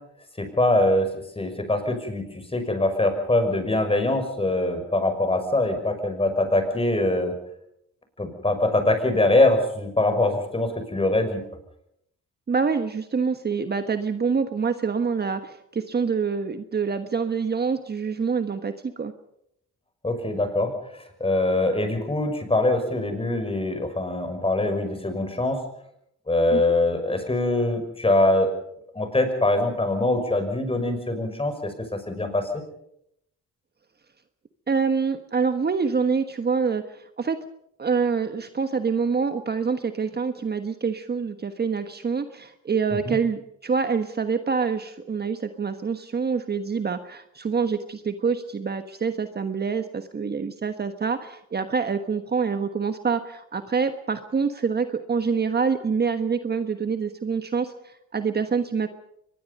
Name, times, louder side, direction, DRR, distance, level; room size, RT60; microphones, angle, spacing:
voice 1, 0.4-1.1 1.4-7.3 8.2-11.4 20.0-25.6 26.3-28.5 28.9-32.5 42.9-43.1, left 2 dB, 20° left, 7 dB, 5.9 m, -23 dB
voice 2, 12.5-19.1 26.5-26.6 34.7-37.4 37.8-58.9, right 5 dB, 35° right, 9 dB, 1.3 m, -26 dB
24.0 x 21.0 x 5.5 m, 0.76 s
cardioid pair, 90°, 30 cm